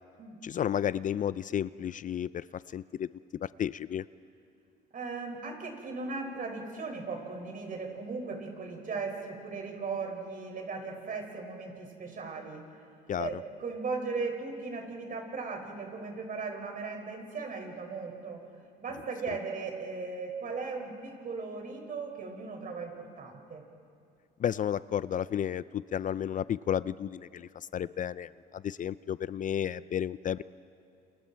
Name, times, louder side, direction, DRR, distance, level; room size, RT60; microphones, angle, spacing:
voice 1, 0.4-3.1 3.4-4.0 13.1-13.4 24.4-30.4, left 9 dB, 45° left, 17 dB, 0.5 m, -32 dB
voice 2, 4.9-12.6 13.2-18.4 18.8-23.6, right 4 dB, 50° right, 1 dB, 6.3 m, -37 dB
29.0 x 28.5 x 4.6 m, 2.4 s
supercardioid pair, 80°, 18 cm